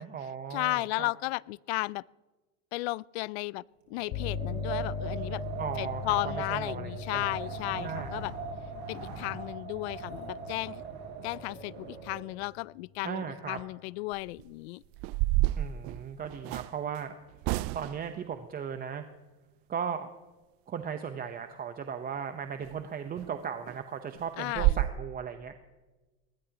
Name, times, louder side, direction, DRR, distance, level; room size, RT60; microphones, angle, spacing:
voice 1, 0.0-1.1 5.6-7.4 7.7-8.1 13.0-13.6 15.6-17.1 17.7-19.0 19.7-20.1 20.7-25.7, right 7 dB, 30° right, 8 dB, 0.9 m, -37 dB
voice 2, 0.5-2.0 2.7-3.6 3.9-5.4 5.8-8.3 8.9-10.8 11.2-14.8 24.4-24.8, left 23 dB, 75° left, 24 dB, 0.5 m, -34 dB
Wind, 3.9-12.4, right 5 dB, 80° right, 5.2 m, -40 dB
sound 1, 4.1-11.8, left 6 dB, 55° left, 1.9 m, -40 dB
sound 2, 14.1-14.4 14.9-16.7 17.4-18.1 22.6-22.7 23.2-23.3 23.7-23.8 24.1-24.2 24.5-24.9, right 18 dB, 45° right, 0.4 m, -28 dB
22.5 x 19.5 x 3.0 m, 1.2 s
supercardioid pair, 120°, 32 cm